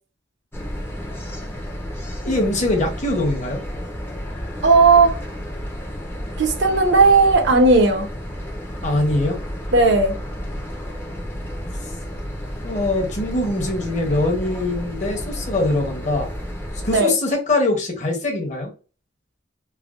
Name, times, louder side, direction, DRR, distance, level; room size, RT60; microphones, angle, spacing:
sound 1, 0.5-17.0, equal, 10° left, 0.5 m, -31 dB
voice 1, 2.2-3.6 8.8-9.4 12.6-16.3 16.8-18.7, left 2 dB, 40° left, 0.8 m, -22 dB
voice 2, 4.6-5.1 6.4-8.1 9.7-10.1 16.9-17.1, right 3 dB, 75° right, 0.7 m, -15 dB
3.3 x 2.1 x 2.4 m
head